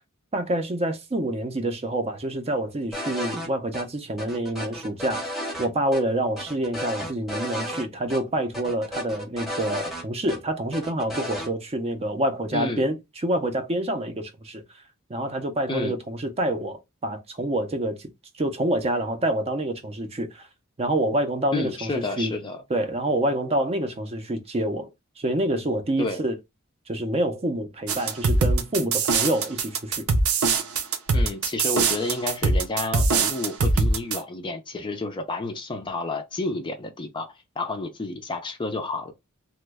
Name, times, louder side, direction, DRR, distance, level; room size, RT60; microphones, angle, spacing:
voice 1, 0.3-5.3 5.6-13.0 13.2-14.6 15.1-18.1 18.4-20.5 20.8-22.3 22.7-24.9 25.2-26.3 26.9-30.0, right 1 dB, 30° right, 0.5 m, -27 dB
sound 1, 2.9-3.5 3.7-3.8 4.2-5.7 5.9-6.0 6.4-7.8 8.1-8.2 8.5-10.4 10.7-11.5, equal, ahead, 0.8 m, -33 dB
voice 2, 12.5-12.8 15.7-15.9 21.5-22.6 26.0-26.2 31.1-39.1, left 2 dB, 20° left, 0.4 m, -30 dB
sound 2, 27.9-34.2, right 3 dB, 70° right, 0.6 m, -22 dB
2.9 x 2.1 x 3.3 m
head